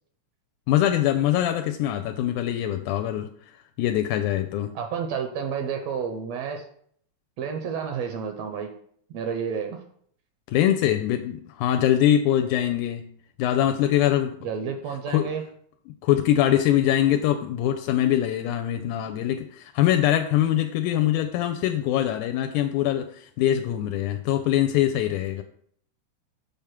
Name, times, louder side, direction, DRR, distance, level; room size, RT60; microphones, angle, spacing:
voice 1, 0.7-4.8 10.5-13.0 13.4-14.4 15.1-15.3 16.0-25.4, left 11 dB, 85° left, 5 dB, 2.0 m, -23 dB
voice 2, 4.7-6.6 7.4-8.7 9.1-9.8 14.4-15.4, right 6 dB, 75° right, 5 dB, 1.6 m, -30 dB
7.0 x 3.6 x 5.8 m, 0.62 s
omnidirectional pair, 3.5 m